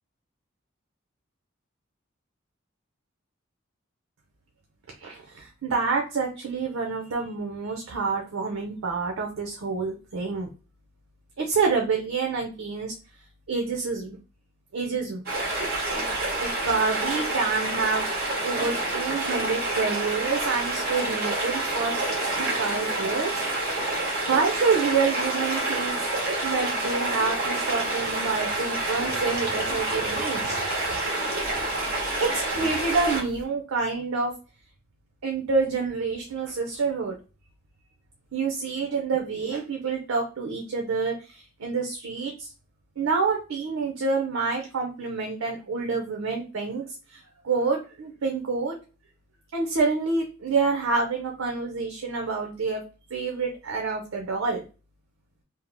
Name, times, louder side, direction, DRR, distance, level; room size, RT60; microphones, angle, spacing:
voice 1, 5.0-10.5 11.4-12.9 13.5-14.2 14.7-15.2 16.4-18.0 18.4-23.4 24.3-26.0 26.4-30.6 30.9-31.0 32.0-34.3 35.2-37.1 38.3-42.5 43.0-46.8 47.1-48.8 49.5-52.8 53.1-54.6, right 4 dB, 85° right, 1 dB, 0.5 m, -27 dB
sound 1, 15.3-33.4, right 2 dB, 50° right, 1.0 m, -28 dB
2.7 x 2.0 x 2.9 m, 0.33 s
head